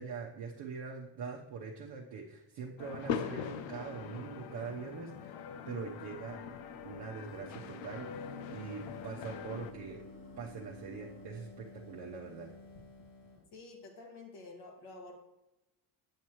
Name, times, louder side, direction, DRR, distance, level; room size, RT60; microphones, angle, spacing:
voice 1, 0.0-5.4 5.7-6.4 6.8-10.0 10.4-12.5, right 5 dB, 60° right, -3 dB, 1.0 m, -43 dB
sound 1, 2.8-9.7, left 7 dB, 80° left, 0.7 m, -42 dB
sound 2, 5.8-11.3, left 1 dB, 30° left, 1.6 m, -55 dB
sound 3, 7.3-13.5, left 2 dB, 50° left, 2.3 m, -53 dB
voice 2, 13.5-15.1, left 3 dB, 65° left, 2 dB, 1.8 m, -49 dB
7.6 x 7.3 x 3.1 m, 0.95 s
cardioid pair, 85°, 45 cm